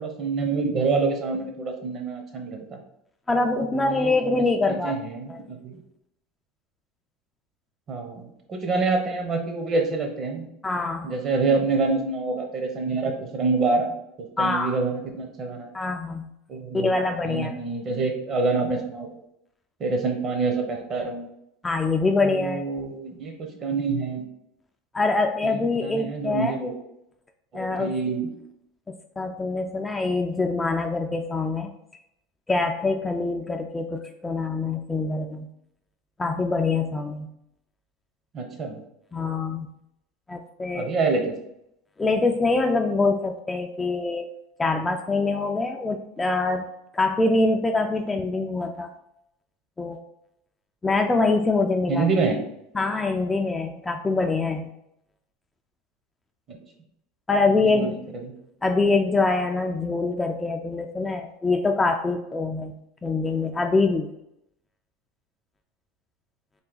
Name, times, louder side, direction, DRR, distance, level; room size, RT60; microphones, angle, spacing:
voice 1, 0.0-2.8 3.7-5.8 7.9-8.2 8.5-10.5 11.0-13.9 14.4-15.7 16.5-16.9 17.2-19.2 19.8-21.3 22.2-24.2 25.4-26.7 27.5-28.3 38.3-38.8 40.7-41.4 51.9-52.4 56.5-56.6 57.6-58.0 58.2-58.3, right 4 dB, 35° right, 4 dB, 0.8 m, -26 dB
voice 2, 3.3-5.0 5.3-5.4 10.6-11.1 14.4-14.8 15.7-16.3 16.7-17.5 21.6-22.7 24.9-26.5 27.5-27.9 28.9-31.7 32.5-35.5 36.2-37.3 39.1-39.7 40.3-40.9 42.0-44.3 44.6-46.7 46.9-48.9 49.8-50.0 50.8-52.1 52.7-54.7 57.3-58.0 58.6-62.7 63.0-64.1, left 3 dB, 15° left, 4 dB, 0.3 m, -24 dB
3.8 x 2.2 x 3.8 m, 0.79 s
supercardioid pair, 115°, 0 cm